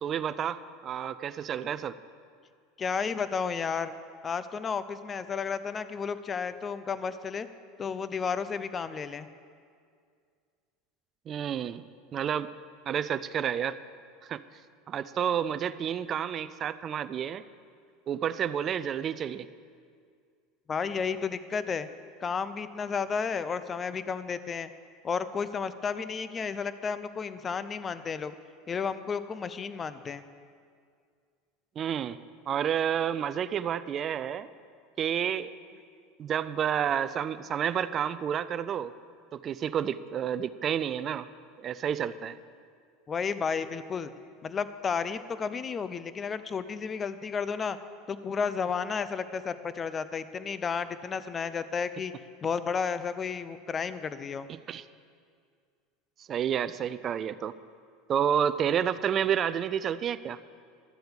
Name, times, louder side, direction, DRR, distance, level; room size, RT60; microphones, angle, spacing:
voice 1, 0.0-2.0 11.3-11.8 12.1-12.5 12.9-13.8 14.2-14.4 14.9-17.4 18.1-19.5 31.8-32.2 32.5-34.5 35.0-35.5 36.2-38.9 39.3-41.3 41.6-42.4 54.5-54.8 56.2-57.6 58.1-60.4, right 9 dB, 40° right, 14 dB, 0.5 m, -30 dB
voice 2, 2.8-4.0 4.2-7.5 7.8-9.3 20.7-21.9 22.2-24.7 25.0-28.3 28.7-30.3 43.1-44.1 44.4-47.8 48.1-52.1 52.4-54.5, left 6 dB, 30° left, 13 dB, 0.6 m, -32 dB
12.5 x 7.8 x 6.8 m, 2.1 s
hypercardioid pair, 90°, 0 cm